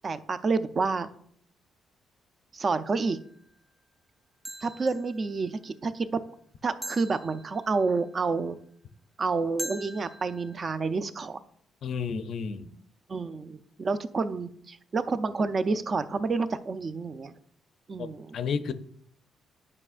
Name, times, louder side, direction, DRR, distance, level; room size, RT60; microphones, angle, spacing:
voice 1, 0.0-1.1 2.5-3.2 4.6-6.2 6.6-8.6 9.2-11.4 13.1-17.3 17.9-18.4, right 4 dB, 40° right, 12 dB, 0.5 m, -29 dB
sound 1, 2.9-3.3 4.4-5.2 6.8-7.9 9.6-10.6, equal, 5° right, 0.7 m, -41 dB
voice 2, 11.8-12.7 18.0-18.7, left 6 dB, 65° left, 12 dB, 0.5 m, -32 dB
9.7 x 5.3 x 2.5 m, 0.63 s
cardioid pair, 90°, 0 cm